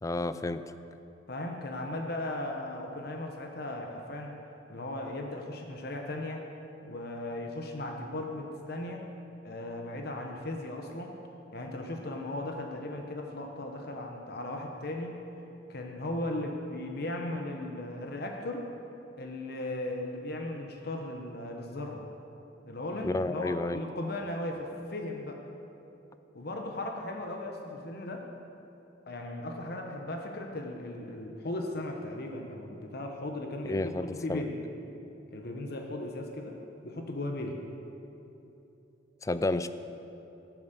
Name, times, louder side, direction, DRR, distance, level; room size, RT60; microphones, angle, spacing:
voice 1, 0.0-0.6 23.0-23.8 33.7-34.4 39.2-39.7, left 2 dB, 15° left, 12 dB, 0.3 m, -30 dB
voice 2, 1.3-4.3 4.7-6.4 6.8-9.1 9.4-11.2 11.5-15.2 15.7-18.6 19.2-22.0 22.6-25.4 26.3-28.3 29.1-34.6 35.3-36.6 36.8-37.6, left 1 dB, 55° left, 2 dB, 1.0 m, -37 dB
15.0 x 7.3 x 6.8 m, 3.0 s
head